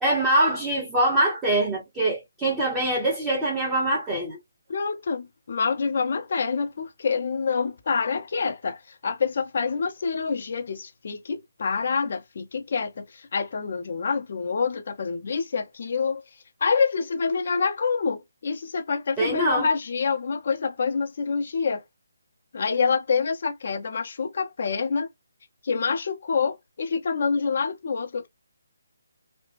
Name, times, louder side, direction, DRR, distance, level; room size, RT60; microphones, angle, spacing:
voice 1, 0.0-4.4 19.2-19.7, right 1 dB, 10° right, 1.0 m, -23 dB
voice 2, 4.7-16.2 16.6-21.8 22.5-25.1 25.6-28.3, left 5 dB, 50° left, 0.7 m, -27 dB
3.2 x 2.1 x 2.6 m
figure-of-eight pair, 150°, 0 cm